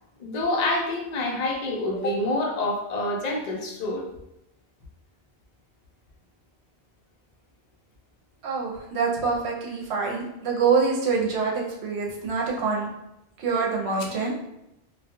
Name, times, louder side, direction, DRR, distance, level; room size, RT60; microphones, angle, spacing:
voice 1, 0.2-4.1, left 2 dB, 50° left, 0 dB, 0.5 m, -27 dB
voice 2, 8.4-12.9 13.4-14.3, right 5 dB, 75° right, -3 dB, 0.9 m, -25 dB
2.2 x 2.2 x 2.9 m, 0.87 s
omnidirectional pair, 1.1 m